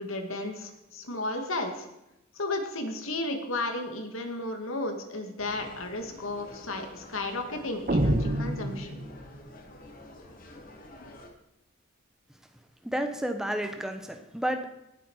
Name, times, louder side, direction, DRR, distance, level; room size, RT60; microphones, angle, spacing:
voice 1, 0.0-1.9 2.4-9.0, left 2 dB, 80° left, 4 dB, 2.1 m, -33 dB
sound 1, 5.4-11.3, left 1 dB, 40° left, 1.8 m, -48 dB
sound 2, 7.9-9.5, right 1 dB, 40° right, 0.9 m, -27 dB
voice 2, 12.8-14.7, right 1 dB, 5° right, 5 dB, 1.1 m, -31 dB
18.5 x 8.1 x 4.9 m, 0.88 s
head